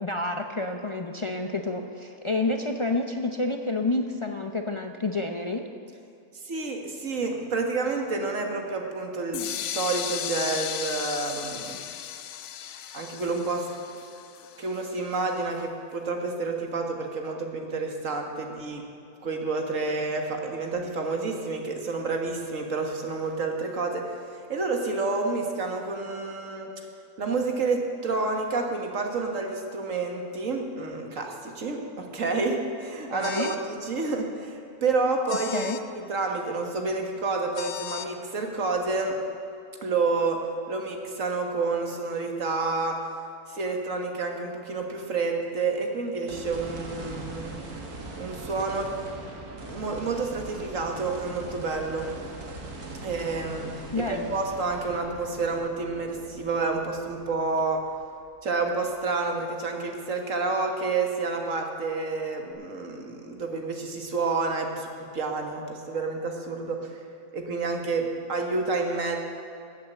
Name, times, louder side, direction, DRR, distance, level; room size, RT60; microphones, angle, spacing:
voice 1, 0.0-5.7 33.1-33.5 35.5-35.8 53.9-54.4, left 2 dB, 40° left, 4 dB, 0.4 m, -29 dB
voice 2, 6.4-11.8 12.9-13.7 14.6-18.8 19.2-26.7 27.2-35.7 35.9-39.2 39.8-40.4 40.7-43.0 43.5-47.6 48.2-48.9 49.7-52.1 53.0-53.7 54.0-57.8 58.4-67.0 67.3-69.2, right 3 dB, 60° right, 3 dB, 1.9 m, -29 dB
sound 1, 9.3-15.2, left 10 dB, 65° left, 0.8 m, -35 dB
sound 2, 33.2-33.6 35.3-35.8 37.5-38.1, left 10 dB, 80° left, 1.2 m, -37 dB
sound 3, 46.3-58.6 59.1-59.2 62.5-62.6, right 2 dB, 85° right, 2.4 m, -41 dB
14.0 x 8.5 x 8.8 m, 2.7 s
omnidirectional pair, 1.6 m